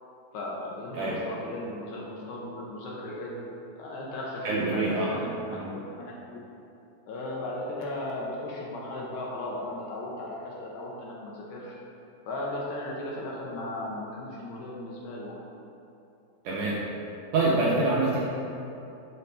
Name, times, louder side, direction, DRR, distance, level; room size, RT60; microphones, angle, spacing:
voice 1, 0.3-3.4 3.8-4.8 5.1-6.4 7.1-11.8 12.3-15.4, left 1 dB, 75° left, -4 dB, 1.9 m, -36 dB
voice 2, 4.4-5.1 5.5-5.7 16.4-16.8 17.3-18.2, right 2 dB, 75° right, -6 dB, 1.8 m, -25 dB
6.7 x 5.8 x 3.3 m, 2.8 s
omnidirectional pair, 4.2 m